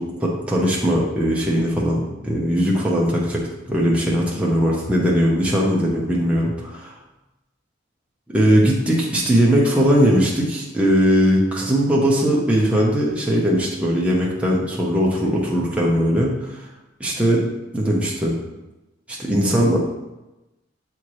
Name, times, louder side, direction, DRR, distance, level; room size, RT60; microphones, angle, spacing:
voice 1, 0.0-6.9 8.3-16.6 17.0-17.4 17.7-18.3 19.1-19.8, equal, 5° right, -4 dB, 0.8 m, -19 dB
7.2 x 4.5 x 3.2 m, 1.0 s
head